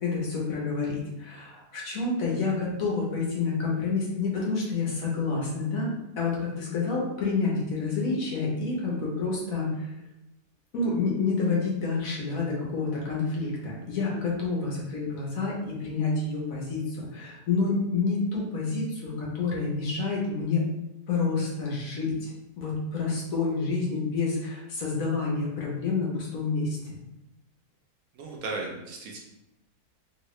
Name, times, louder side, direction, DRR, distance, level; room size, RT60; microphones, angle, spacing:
voice 1, 0.0-9.9 10.7-20.6 21.1-27.0, left 4 dB, 65° left, -3 dB, 1.2 m, -28 dB
voice 2, 28.2-29.2, right 3 dB, 70° right, 0 dB, 0.9 m, -35 dB
3.0 x 2.8 x 3.0 m, 0.95 s
omnidirectional pair, 1.7 m